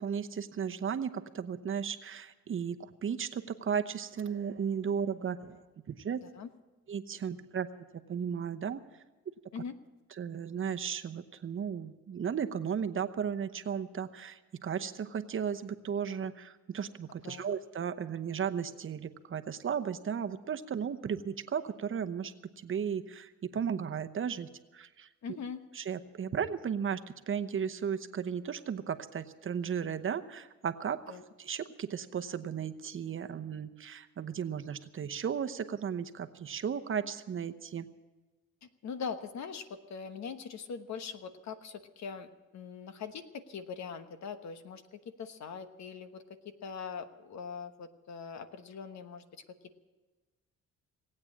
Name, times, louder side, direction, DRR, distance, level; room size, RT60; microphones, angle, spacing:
voice 1, 0.0-5.6 5.9-6.2 6.9-7.7 8.1-8.8 10.2-25.1 25.7-27.0 27.3-37.9, right 7 dB, 45° right, 8 dB, 0.9 m, -35 dB
voice 2, 17.2-17.6 25.2-25.6 31.1-31.2 38.6-42.3 42.5-49.4, left 6 dB, 65° left, 9 dB, 1.2 m, -42 dB
18.5 x 8.7 x 8.6 m, 1.2 s
cardioid pair, 90°, 30 cm